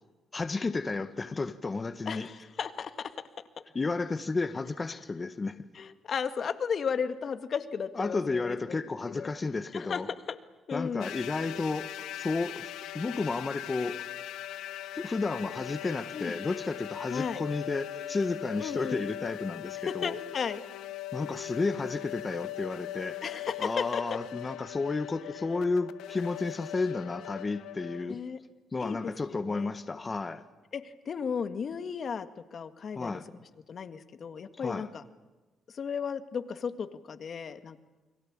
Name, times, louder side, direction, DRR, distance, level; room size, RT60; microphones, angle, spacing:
voice 1, 0.3-2.3 3.7-5.6 8.0-10.1 10.7-11.9 12.2-12.7 12.9-14.0 14.9-20.1 21.1-23.2 23.6-28.2 28.7-30.4 32.9-33.2 34.6-34.9, left 3 dB, 30° left, 1.5 m, -32 dB
voice 2, 2.1-3.1 5.7-8.8 9.1-9.3 9.7-10.0 10.3-10.4 10.7-11.1 16.1-16.3 17.1-17.4 18.6-19.0 19.8-20.6 23.2-24.0 28.1-28.4 28.8-29.7 30.7-33.1 33.7-35.0 35.7-37.8, left 6 dB, 50° left, 1.9 m, -34 dB
sound 1, 11.0-28.1, left 13 dB, 85° left, 0.9 m, -40 dB
29.5 x 22.0 x 8.8 m
cardioid pair, 90°, 0 cm